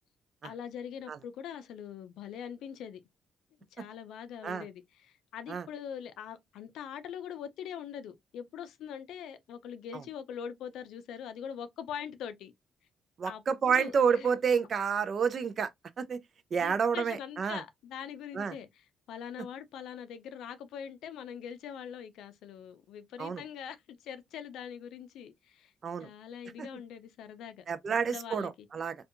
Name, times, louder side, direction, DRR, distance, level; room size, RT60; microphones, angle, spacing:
voice 1, 0.4-3.0 3.7-12.5 13.2-14.3 16.6-25.7 26.0-28.7, left 8 dB, 80° left, 0.4 m, -43 dB
voice 2, 13.2-15.7 16.0-16.2 16.5-17.6 18.3-18.6 23.2-23.4 25.8-26.1 27.7-29.0, right 6 dB, 50° right, 0.4 m, -29 dB
2.6 x 2.3 x 2.4 m
cardioid pair, 90°, 0 cm